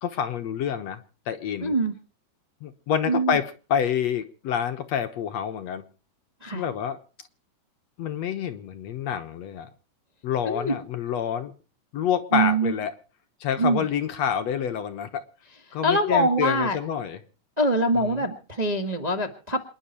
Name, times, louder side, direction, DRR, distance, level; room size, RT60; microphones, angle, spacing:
voice 1, 0.0-1.0 1.3-1.8 2.6-5.8 6.5-7.0 8.0-9.7 10.2-11.6 11.9-12.9 13.4-15.2 15.7-17.2 17.9-18.3, left 8 dB, 65° left, 8 dB, 2.1 m, -28 dB
voice 2, 1.6-1.9 3.1-3.4 6.4-6.6 10.4-10.7 12.3-12.7 13.6-13.8 15.8-16.8 17.6-19.6, right 1 dB, 20° right, 3 dB, 1.1 m, -23 dB
27.0 x 10.5 x 4.4 m, 0.38 s
omnidirectional pair, 3.6 m